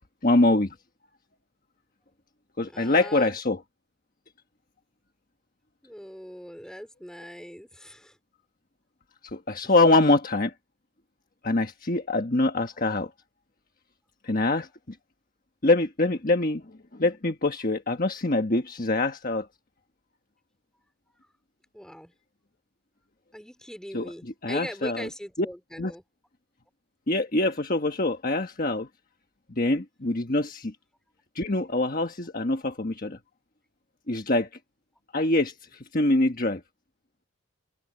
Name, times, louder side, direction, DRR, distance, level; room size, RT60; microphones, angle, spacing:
voice 1, 0.2-0.7 2.6-3.6 9.2-10.5 11.4-13.1 14.2-15.0 15.6-16.6 16.9-19.5 23.9-25.1 25.8-25.9 27.1-28.9 29.6-30.7 31.3-33.2 34.1-34.5 35.1-36.6, left 2 dB, 40° left, 1.4 m, -24 dB
voice 2, 2.7-3.4 5.8-8.2 9.6-9.7 21.7-22.1 23.3-26.0, equal, 5° left, 3.6 m, -40 dB
head